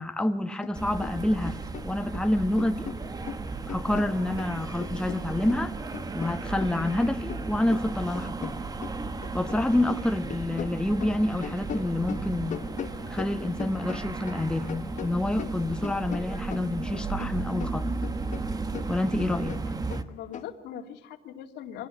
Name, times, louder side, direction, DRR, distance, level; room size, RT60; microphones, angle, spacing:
voice 1, 0.0-1.6 1.8-2.9 3.7-5.7 6.1-8.6 9.3-12.6 13.1-17.9 18.9-19.6, left 1 dB, 5° left, 1.2 m, -28 dB
sound 1, 0.6-0.8 1.0-2.2 2.6-4.5 4.8-9.6 9.9-14.4 14.7-17.3 17.6-20.5, left 8 dB, 45° left, 1.2 m, -40 dB
sound 2, 0.7-20.0, right 3 dB, 20° right, 1.3 m, -35 dB
voice 2, 20.1-21.9, left 10 dB, 80° left, 2.6 m, -41 dB
24.5 x 18.0 x 7.2 m
cardioid pair, 110°, 17 cm